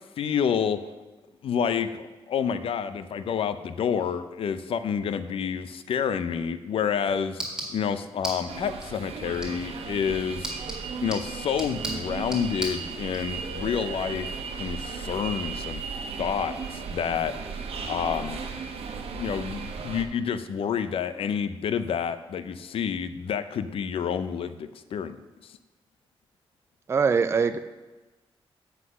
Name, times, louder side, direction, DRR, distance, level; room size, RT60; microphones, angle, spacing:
voice 1, 0.2-0.8 1.4-7.4 7.7-10.5 11.0-15.8 16.2-17.3 17.9-18.4 19.1-25.6, left 7 dB, 65° left, 12 dB, 0.5 m, -29 dB
sound 1, 6.6-13.2, right 1 dB, 10° right, 1.9 m, -39 dB
sound 2, 8.5-20.1, right 5 dB, 80° right, 1.0 m, -36 dB
voice 2, 26.9-27.6, right 5 dB, 25° right, 10 dB, 0.3 m, -22 dB
7.9 x 5.8 x 6.2 m, 1.2 s
wide cardioid pair, 170°, 10 cm